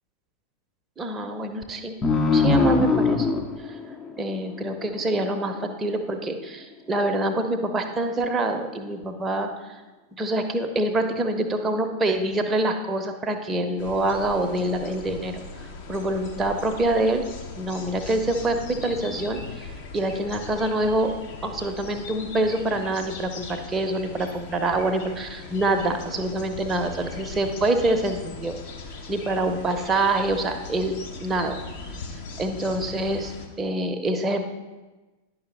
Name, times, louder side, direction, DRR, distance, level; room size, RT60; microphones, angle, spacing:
voice 1, 1.0-1.9 2.3-3.3 4.2-9.5 10.1-15.4 15.9-17.2 17.6-19.4 19.9-21.1 21.4-28.5 29.1-31.6 32.4-34.5, right 2 dB, 15° right, 5 dB, 0.8 m, -25 dB
sound 1, 2.0-5.2, left 4 dB, 15° left, 0.6 m, -22 dB
sound 2, 13.8-33.5, left 4 dB, 50° left, 0.9 m, -39 dB
10.0 x 5.8 x 3.4 m, 1.2 s
figure-of-eight pair, 90°, 0 cm